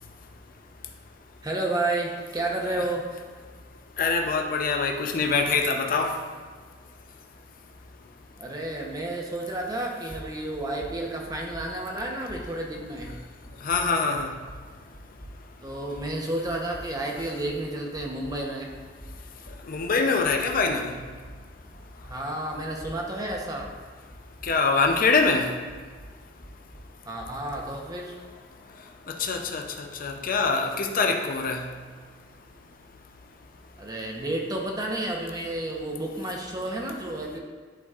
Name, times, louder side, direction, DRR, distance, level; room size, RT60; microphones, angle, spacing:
voice 1, 1.4-3.1 8.4-13.1 15.6-18.7 22.0-23.7 27.0-28.2 33.8-37.4, right 1 dB, 20° right, 0 dB, 0.9 m, -31 dB
voice 2, 4.0-6.2 13.6-14.3 19.7-20.9 24.4-25.5 29.1-31.7, left 4 dB, 50° left, 3 dB, 0.6 m, -24 dB
sound 1, 9.5-9.8 10.1-17.7 18.0-22.3 22.5-25.4 25.7-27.7, equal, 5° left, 0.9 m, -46 dB
11.0 x 4.1 x 2.4 m, 1.5 s
head